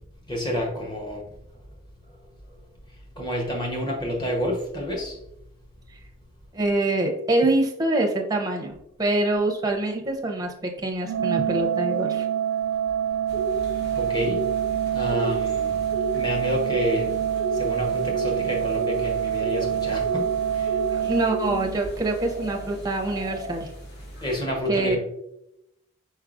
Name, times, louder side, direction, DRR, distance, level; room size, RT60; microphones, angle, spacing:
voice 1, 0.3-1.2 3.2-5.2 13.9-14.5 14.9-15.8 16.1-17.1 17.5-20.8 24.2-25.0, equal, 20° left, 0 dB, 0.9 m, -29 dB
voice 2, 6.5-12.3 20.9-23.7 24.7-25.0, right 2 dB, 15° right, 2 dB, 0.5 m, -25 dB
Organ, 11.0-22.1, right 9 dB, 65° right, 0.3 m, -26 dB
sound 1, 13.3-24.4, right 1 dB, 45° left, 1.1 m, -34 dB
4.6 x 4.3 x 2.5 m, 0.82 s
head